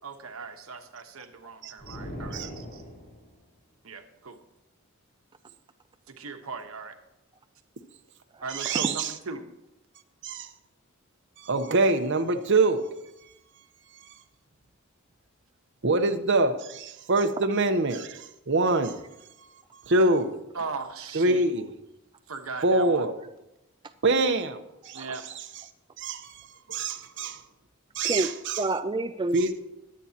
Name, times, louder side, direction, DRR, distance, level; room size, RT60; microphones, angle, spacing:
voice 1, 0.0-2.8 3.8-4.4 6.1-7.0 8.4-9.5 20.5-21.4 22.3-23.1 24.9-25.2, right 4 dB, 80° right, 6 dB, 1.2 m, -38 dB
sound 1, 1.8-3.4, equal, 45° left, 4.7 m, -40 dB
voice 2, 8.5-9.1 10.2-10.5 11.4-12.9 14.0-14.1 15.8-19.0 19.4-20.3 21.1-21.7 22.6-23.2 24.0-25.1 26.0-27.4 27.9-28.6 29.3-29.5, right 2 dB, 60° right, 7 dB, 0.9 m, -25 dB
voice 3, 28.6-29.6, right 2 dB, 20° right, 8 dB, 0.4 m, -28 dB
21.5 x 8.5 x 2.9 m, 0.92 s
head